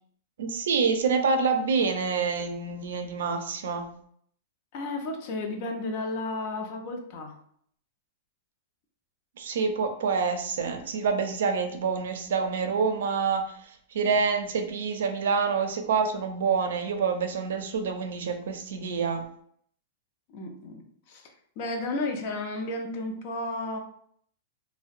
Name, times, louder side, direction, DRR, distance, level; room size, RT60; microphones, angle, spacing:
voice 1, 0.4-3.9 9.4-19.2, right 5 dB, 80° right, 6 dB, 0.4 m, -27 dB
voice 2, 4.7-7.3 20.3-23.8, left 2 dB, 45° left, 3 dB, 0.5 m, -33 dB
2.7 x 2.1 x 2.5 m, 0.63 s
supercardioid pair, 155°, 0 cm